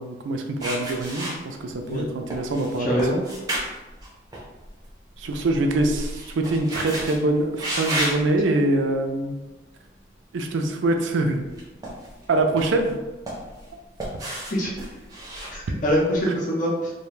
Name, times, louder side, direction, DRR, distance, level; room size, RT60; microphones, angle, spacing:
voice 1, 0.0-3.3 5.2-9.3 10.3-11.4 12.3-13.0, right 2 dB, 90° right, 5 dB, 0.4 m, -24 dB
sound 1, 0.6-1.9 2.3-4.8 5.1-7.2 7.6-8.2 8.9-9.1 11.4-12.2 12.6-13.7 14.0-16.1, right 1 dB, 20° right, 0.5 m, -32 dB
voice 2, 2.8-3.2 14.5-14.7 15.5-16.9, equal, 45° left, -4 dB, 0.5 m, -24 dB
2.3 x 2.2 x 3.1 m, 1.1 s
head